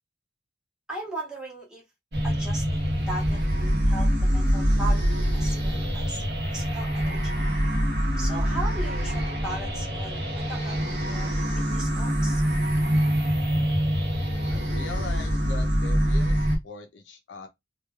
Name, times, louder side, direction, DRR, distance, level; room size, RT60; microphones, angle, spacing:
voice 1, 0.9-1.8 2.2-6.2 6.5-7.4 8.2-11.3 11.7-12.4, right 2 dB, 5° right, 0.9 m, -38 dB
sound 1, 2.1-16.6, equal, 65° right, 0.9 m, -25 dB
voice 2, 14.5-17.5, left 4 dB, 90° left, 0.5 m, -41 dB
3.0 x 2.2 x 2.3 m
head